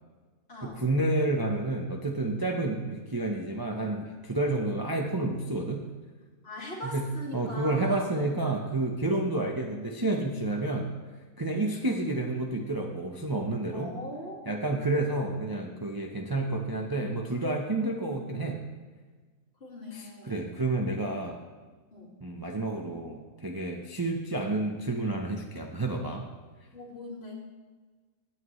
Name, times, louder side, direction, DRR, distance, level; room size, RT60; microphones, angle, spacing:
voice 1, 0.6-5.8 6.9-7.1 7.3-10.9 11.4-13.9 14.5-18.6 19.9-21.4 22.2-26.3, right 2 dB, 20° right, 1 dB, 0.7 m, -30 dB
voice 2, 6.4-8.4 11.5-11.7 13.7-14.7 19.6-20.5 21.9-22.1 26.7-27.3, left 1 dB, 45° left, -2 dB, 2.3 m, -41 dB
17.0 x 8.6 x 3.2 m, 1.4 s
omnidirectional pair, 1.5 m